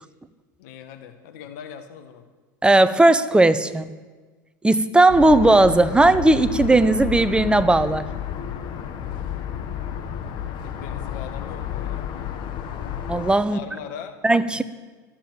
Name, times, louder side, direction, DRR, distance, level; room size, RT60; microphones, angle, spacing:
voice 1, 0.6-2.2 10.6-12.1 13.4-14.2 14.5-14.6, left 8 dB, 65° left, 7 dB, 1.5 m, -40 dB
voice 2, 2.6-3.9 4.6-8.0 13.1-13.6 14.2-14.6, right 2 dB, 10° right, 13 dB, 0.7 m, -17 dB
sound 1, 5.1-13.3, left 9 dB, 50° left, 1.4 m, -31 dB
12.5 x 7.2 x 9.5 m, 1.3 s
hypercardioid pair, 85°, 10 cm